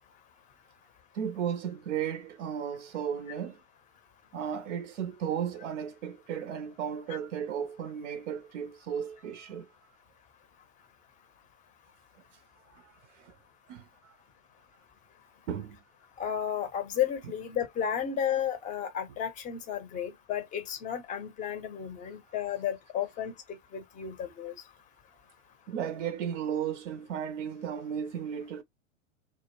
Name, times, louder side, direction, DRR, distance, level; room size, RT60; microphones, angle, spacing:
voice 1, 1.1-3.6 4.3-9.7 12.7-13.3 13.7-14.1 15.5-15.8 25.7-28.6, right 8 dB, 70° right, 0.6 m, -35 dB
voice 2, 16.2-24.5, left 9 dB, 20° left, 0.6 m, -33 dB
2.0 x 2.0 x 2.9 m
hypercardioid pair, 115°, 39 cm